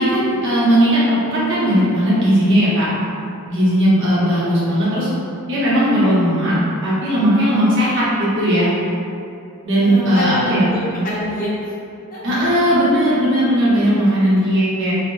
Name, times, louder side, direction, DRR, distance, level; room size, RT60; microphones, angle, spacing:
voice 1, 0.0-2.9 3.5-5.1 5.5-6.5 6.8-8.7 9.6-10.7 12.2-14.9, equal, 60° right, -9 dB, 0.9 m, -17 dB
voice 2, 4.3-5.2 9.7-11.7 12.1-12.2, left 1 dB, 40° left, -8 dB, 0.7 m, -27 dB
3.4 x 2.1 x 2.6 m, 2.6 s
head